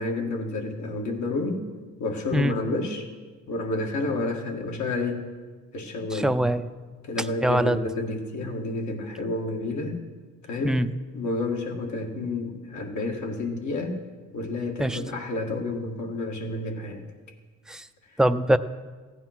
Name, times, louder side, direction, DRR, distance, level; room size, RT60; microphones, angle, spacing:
voice 1, 0.0-1.6 2.0-3.1 3.5-5.3 5.7-6.4 7.1-9.9 10.5-10.8 11.1-14.0 14.3-17.0, left 2 dB, 70° left, 3 dB, 2.0 m, -30 dB
voice 2, 6.1-6.6 7.4-7.8 10.6-10.9 14.8-15.0 17.7-17.8 18.2-18.6, right 1 dB, ahead, 10 dB, 0.5 m, -22 dB
15.5 x 9.2 x 6.0 m, 1.4 s
cardioid pair, 90°, 30 cm